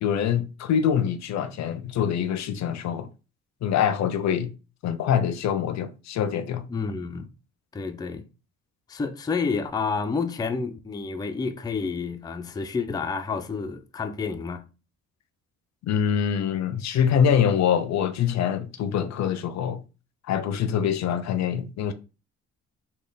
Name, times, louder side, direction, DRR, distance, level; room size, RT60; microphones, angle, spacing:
voice 1, 0.0-3.1 3.6-4.5 4.8-6.6 15.8-19.8 20.3-21.9, left 8 dB, 65° left, 0.5 m, -24 dB
voice 2, 6.7-7.3 7.7-8.3 8.9-14.7, left 4 dB, 15° left, 0.4 m, -29 dB
3.3 x 2.2 x 3.8 m
cardioid pair, 90°, 30 cm